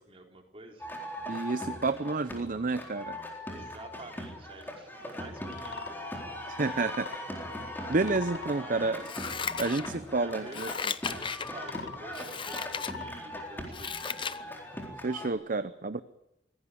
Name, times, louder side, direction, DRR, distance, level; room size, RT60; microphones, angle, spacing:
voice 1, 0.1-0.9 3.5-6.5 8.5-9.2 10.2-10.6 11.0-14.3, right 2 dB, 35° right, 2 dB, 3.9 m, -49 dB
sound 1, 0.8-15.3, left 1 dB, 10° left, 4.0 m, -40 dB
voice 2, 1.3-3.2 6.5-7.1 7.9-9.0 9.6-10.9 15.0-16.0, right 3 dB, 50° right, 12 dB, 0.7 m, -30 dB
sound 2, 5.5-5.9 6.6-7.2 7.9-8.5 9.1-9.8 10.5-10.9 11.4-12.0 12.6-13.1, left 5 dB, 70° left, 0.8 m, -42 dB
Scissors, 9.0-10.1 10.5-11.5 12.1-12.9 13.4-14.4 14.8-14.9, left 6 dB, 30° left, 0.8 m, -36 dB
24.0 x 17.0 x 8.6 m, 0.88 s
head